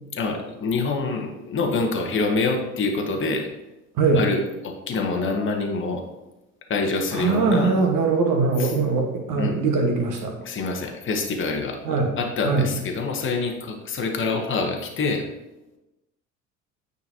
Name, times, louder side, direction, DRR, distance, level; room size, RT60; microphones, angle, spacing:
voice 1, 0.1-3.5 4.1-6.0 6.7-7.7 8.6-8.7 9.4-9.5 10.4-11.8 12.2-15.2, left 3 dB, 30° left, 2 dB, 1.1 m, -26 dB
voice 2, 4.0-4.3 7.1-10.4 11.8-12.1 12.4-12.7, right 4 dB, 50° right, 2 dB, 1.5 m, -21 dB
8.9 x 4.1 x 2.8 m, 0.99 s
figure-of-eight pair, 60°, 41 cm